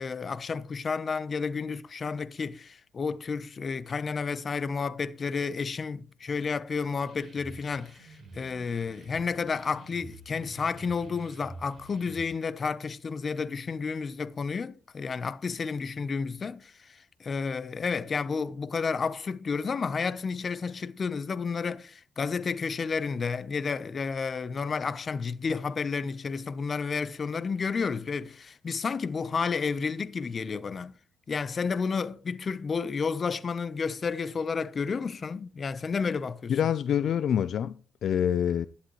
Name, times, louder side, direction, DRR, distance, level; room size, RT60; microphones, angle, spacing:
voice 1, 0.0-30.9 31.3-36.6, left 5 dB, 40° left, 0.8 m, -31 dB
sound 1, 7.0-12.3, right 3 dB, 40° right, 4.4 m, -48 dB
voice 2, 36.5-38.7, left 9 dB, 65° left, 0.4 m, -26 dB
11.5 x 11.5 x 3.1 m
cardioid pair, 90°, 0 cm